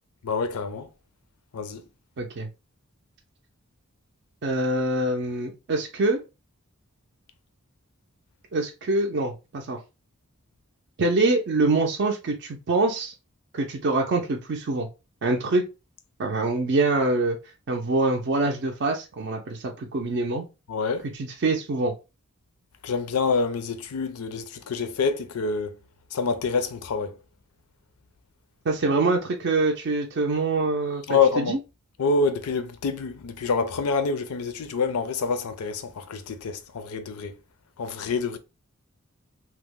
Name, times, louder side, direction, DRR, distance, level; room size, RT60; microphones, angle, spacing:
voice 1, 0.2-0.9 1.5-1.8 20.7-21.1 22.8-25.7 26.1-27.2 31.1-31.6 32.0-37.4 37.8-38.4, left 4 dB, 80° left, 0.5 m, -26 dB
voice 2, 2.2-2.5 4.4-6.2 8.5-9.8 11.0-13.1 13.5-14.9 15.2-15.7 16.2-17.4 17.7-20.5 21.1-21.9 28.7-31.6, right 2 dB, 50° right, 0.4 m, -25 dB
2.9 x 2.0 x 3.4 m
head